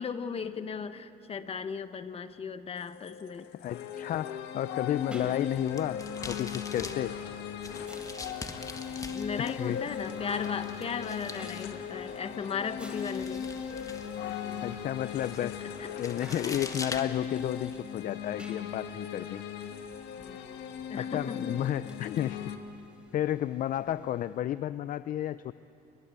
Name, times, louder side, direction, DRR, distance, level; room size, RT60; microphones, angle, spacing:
voice 1, 0.0-3.5 5.1-5.3 9.1-13.7 15.4-15.5 16.4-16.6 20.9-21.7, left 6 dB, 35° left, 11 dB, 1.3 m, -36 dB
sound 1, 2.8-22.6, left 7 dB, 85° left, 1.8 m, -38 dB
voice 2, 3.5-7.2 9.4-9.8 14.2-15.6 16.0-19.4 21.0-22.5 23.1-25.5, left 12 dB, 55° left, 15 dB, 0.5 m, -32 dB
sound 2, 4.9-24.5, right 1 dB, 5° right, 3.6 m, -57 dB
sound 3, 5.5-17.8, left 3 dB, 20° left, 1.8 m, -45 dB
29.0 x 22.5 x 8.2 m, 2.6 s
cardioid pair, 110°, 17 cm